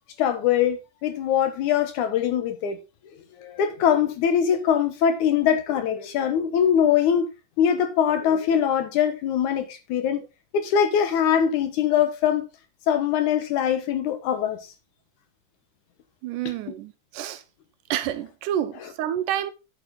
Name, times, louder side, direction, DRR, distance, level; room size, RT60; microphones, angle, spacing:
voice 1, 0.2-2.8 3.4-7.3 7.6-10.2 10.5-12.5 12.9-14.6, left 8 dB, 70° left, 2.4 m, -22 dB
voice 2, 16.2-17.4 17.9-19.5, right 11 dB, 80° right, 2.2 m, -29 dB
9.0 x 7.5 x 3.8 m
omnidirectional pair, 3.8 m